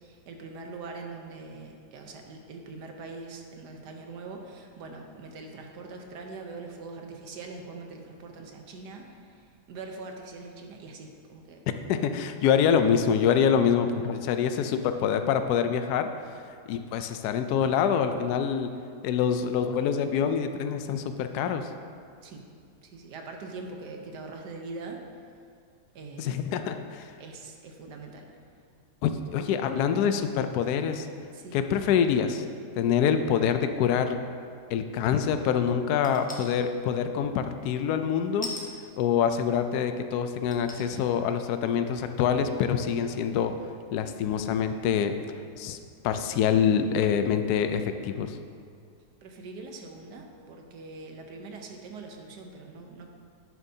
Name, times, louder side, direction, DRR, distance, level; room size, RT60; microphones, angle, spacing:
voice 1, 0.0-9.4 9.7-11.6 22.2-22.5 22.8-25.0 25.9-26.4 27.2-28.2 29.4-29.5 31.3-31.6 49.2-53.1, right 3 dB, 75° right, 3 dB, 1.5 m, -42 dB
voice 2, 11.9-16.1 16.7-18.7 19.0-21.7 26.2-27.0 29.0-31.1 31.5-32.4 32.8-34.2 34.7-38.5 39.0-43.5 43.9-45.1 45.6-45.8 46.0-48.4, left 7 dB, 75° left, 8 dB, 1.1 m, -25 dB
sound 1, 36.0-36.5 38.4-38.7 39.6-39.7 40.5-41.0 41.5-41.6, left 2 dB, 10° left, 0.5 m, -38 dB
11.0 x 8.9 x 2.7 m, 2.3 s
omnidirectional pair, 1.8 m